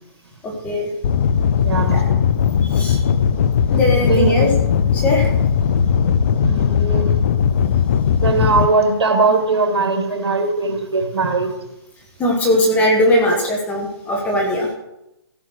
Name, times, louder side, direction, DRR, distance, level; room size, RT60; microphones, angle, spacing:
sound 1, 1.0-8.7, left 7 dB, 35° left, 0.5 m, -18 dB
voice 1, 1.6-2.0 3.7-4.5 6.4-7.2 8.2-11.5, right 3 dB, 70° right, 4 dB, 2.6 m, -20 dB
voice 2, 3.7-4.5 4.9-5.3 8.4-8.5 12.2-14.7, left 1 dB, 10° left, 0 dB, 1.8 m, -19 dB
15.5 x 5.7 x 6.5 m, 0.89 s
hypercardioid pair, 160°, 14 cm